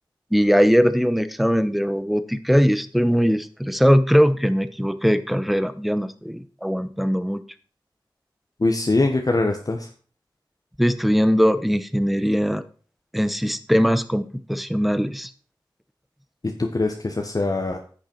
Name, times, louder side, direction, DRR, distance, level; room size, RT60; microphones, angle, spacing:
voice 1, 0.3-7.4 10.8-12.6 13.1-15.3, equal, ahead, 12 dB, 0.8 m, -20 dB
voice 2, 8.6-9.9 16.4-17.8, left 2 dB, 50° left, 4 dB, 1.0 m, -23 dB
10.0 x 6.6 x 4.5 m, 0.43 s
wide cardioid pair, 60°, 8 cm